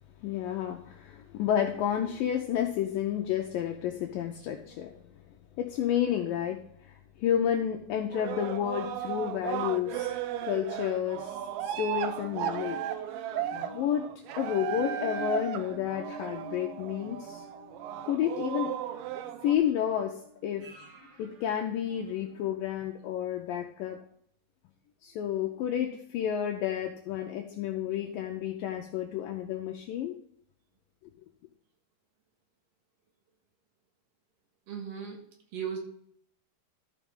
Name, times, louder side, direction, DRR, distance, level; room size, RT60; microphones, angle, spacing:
voice 1, 0.2-5.0 5.6-10.1 10.4-12.8 13.5-14.1 14.4-17.5 18.0-18.7 19.4-20.7 21.2-24.0 25.0-30.2, left 10 dB, 85° left, 4 dB, 2.0 m, -31 dB
sound 1, 8.1-19.6, right 11 dB, 80° right, 2.3 m, -35 dB
sound 2, 11.1-22.6 23.0-23.1, right 1 dB, 45° right, 2.2 m, -48 dB
voice 2, 34.7-35.2 35.5-35.8, right 7 dB, 65° right, 1 dB, 2.8 m, -36 dB
13.5 x 5.0 x 3.6 m, 0.66 s
omnidirectional pair, 4.6 m